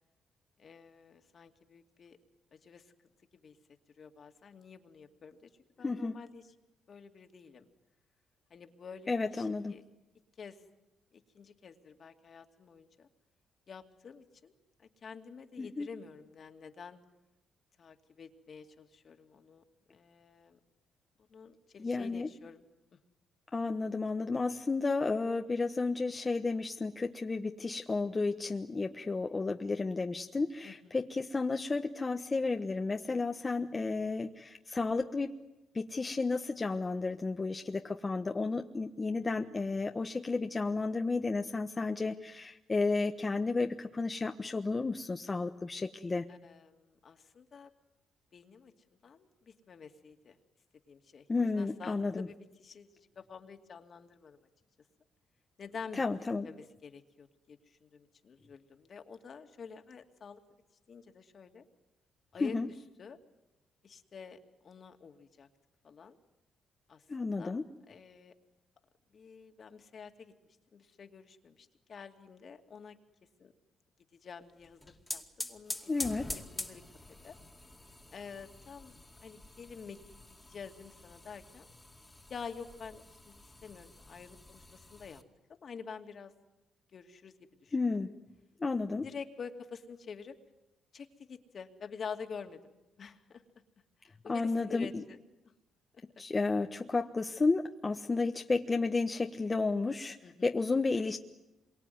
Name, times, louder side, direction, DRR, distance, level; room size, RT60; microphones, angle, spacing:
voice 1, 0.6-2.2 2.5-2.9 3.4-3.6 4.0-5.5 5.8-6.4 6.9-7.7 8.5-9.8 10.4-10.6 11.1-13.1 13.7-14.5 14.8-17.0 17.8-20.6 21.3-22.6 22.9-23.0 30.6-30.9 33.5-33.6 46.3-47.7 48.3-48.7 49.0-50.4 50.9-54.5 55.6-56.0 56.4-60.4 60.9-61.6 62.3-62.6 63.0-63.2 63.8-65.5 65.8-66.2 66.9-67.0 67.4-68.3 69.1-73.0 73.4-73.5 74.2-74.8 75.1-76.8 77.2-77.4 78.1-78.9 79.2-80.1 80.5-81.7 82.3-85.2 85.5-86.3 86.9-87.3 87.6-88.0 89.0-90.3 90.9-93.4 94.0-95.2 95.9-96.0 100.2-100.5, left 6 dB, 50° left, 6 dB, 2.5 m, -48 dB
voice 2, 5.8-6.2 9.1-9.7 15.6-15.9 21.8-22.3 23.5-35.3 35.7-46.3 51.3-52.3 56.0-56.5 62.4-62.7 67.1-67.6 75.9-76.4 87.7-88.1 88.6-89.1 94.3-95.0 96.2-101.2, left 3 dB, 25° left, 4 dB, 1.2 m, -32 dB
sound 1, 74.6-85.2, left 1 dB, 10° left, 2.4 m, -46 dB
26.5 x 23.5 x 9.5 m, 0.96 s
cardioid pair, 90°, 0 cm